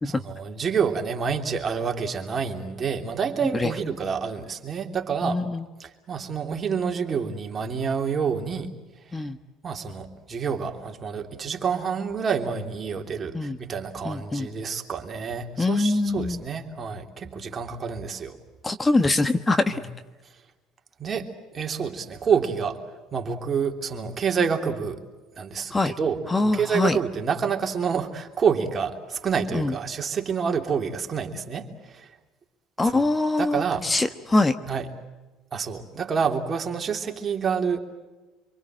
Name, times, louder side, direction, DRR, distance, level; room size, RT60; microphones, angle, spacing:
voice 1, 0.0-5.4 5.8-8.7 9.6-18.4 19.7-19.9 21.0-22.8 23.1-25.0 25.3-32.1 32.8-33.1 33.4-33.9 34.7-34.9 35.5-37.8, right 6 dB, 35° right, 3 dB, 3.2 m, -28 dB
voice 2, 5.2-5.6 9.1-9.4 13.3-13.6 14.0-14.5 15.6-16.4 18.6-19.8 25.7-25.9 26.3-27.0 29.5-29.7 32.8-34.6, left 2 dB, 20° left, 10 dB, 1.2 m, -23 dB
26.5 x 24.5 x 7.8 m, 1.2 s
hypercardioid pair, 65°, 0 cm